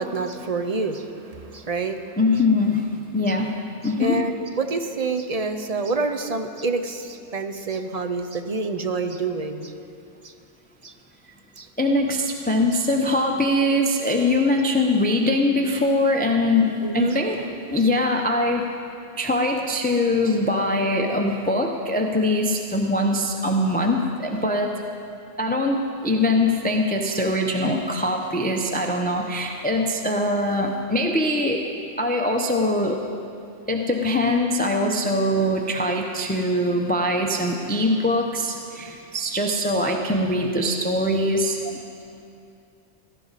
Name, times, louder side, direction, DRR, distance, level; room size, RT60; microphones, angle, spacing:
voice 1, 0.0-2.0 3.3-3.4 3.8-9.7 10.2-10.3 10.8-10.9 11.6-11.7 16.8-17.2, right 3 dB, 40° right, 7 dB, 0.6 m, -27 dB
voice 2, 2.2-3.6 3.8-4.2 11.8-18.7 19.2-24.8 25.4-31.7 32.0-33.0 33.7-41.7, left 1 dB, 10° left, 2 dB, 0.6 m, -22 dB
16.5 x 14.0 x 4.1 m, 2.6 s
omnidirectional pair, 1.2 m